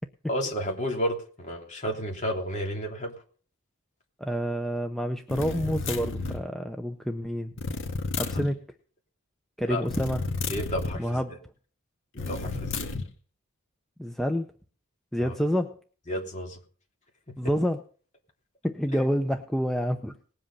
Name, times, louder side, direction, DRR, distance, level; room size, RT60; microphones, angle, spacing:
voice 1, 0.3-3.1 9.7-9.8 10.5-11.2 12.1-12.9 15.2-15.3 16.1-16.6 18.9-19.0, equal, 35° left, 1 dB, 3.2 m, -32 dB
voice 2, 4.2-7.5 8.2-8.6 9.6-10.2 11.0-11.3 14.0-14.5 15.1-15.8 17.4-17.8 18.6-20.1, equal, ahead, 6 dB, 0.6 m, -28 dB
sound 1, 5.3-6.5 7.6-8.5 9.8-11.0 12.2-13.1, left 3 dB, 60° left, 1.9 m, -32 dB
19.5 x 7.8 x 5.6 m, 0.42 s
head